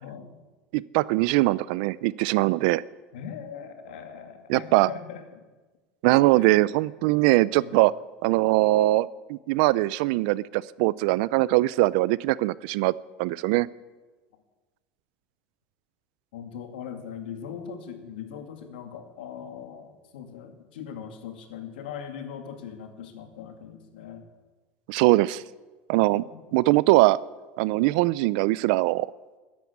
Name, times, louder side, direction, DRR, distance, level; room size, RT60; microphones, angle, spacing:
voice 1, 0.0-0.4 3.1-5.4 6.3-6.8 7.5-7.8 16.3-24.2 26.0-26.4, left 8 dB, 90° left, 6 dB, 2.2 m, -40 dB
voice 2, 0.7-2.8 4.5-4.9 6.0-7.9 8.2-12.9 13.2-13.7 24.9-25.4 25.9-26.2 26.5-27.2 27.6-29.1, right 19 dB, 70° right, 21 dB, 0.5 m, -22 dB
13.5 x 10.5 x 8.1 m, 1.3 s
supercardioid pair, 115°, 5 cm